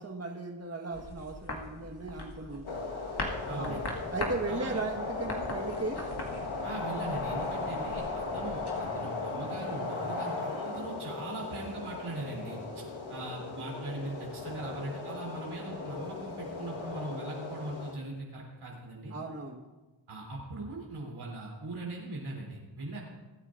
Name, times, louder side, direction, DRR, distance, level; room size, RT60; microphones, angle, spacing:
voice 1, 0.0-3.0 3.5-3.8 4.1-6.0 19.1-19.7, right 3 dB, 30° right, 1 dB, 1.6 m, -36 dB
sound 1, 0.9-8.8, left 2 dB, 55° left, 2.1 m, -41 dB
sound 2, 2.7-17.9, left 3 dB, 80° left, 1.6 m, -37 dB
voice 2, 3.5-3.9 4.5-4.8 6.6-19.1 20.1-23.0, right 2 dB, 85° right, -3 dB, 3.5 m, -40 dB
22.0 x 9.5 x 2.6 m, 1.1 s
cardioid pair, 45°, 48 cm